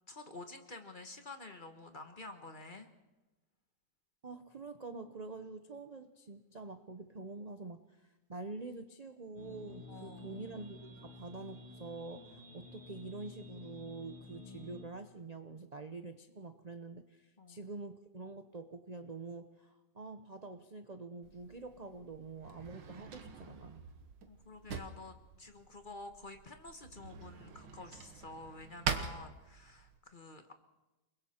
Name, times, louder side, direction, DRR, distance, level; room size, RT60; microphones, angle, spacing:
voice 1, 0.1-2.9 9.9-10.4 17.4-17.7 24.3-30.5, left 2 dB, 30° left, 6 dB, 1.3 m, -50 dB
voice 2, 4.2-23.8, right 3 dB, 45° right, 8 dB, 0.5 m, -46 dB
sound 1, 9.3-14.8, left 2 dB, 75° left, 6.3 m, -51 dB
Drawer open or close, 21.2-30.0, right 6 dB, 80° right, 2.0 m, -44 dB
29.0 x 21.0 x 4.4 m, 1.1 s
omnidirectional pair, 2.0 m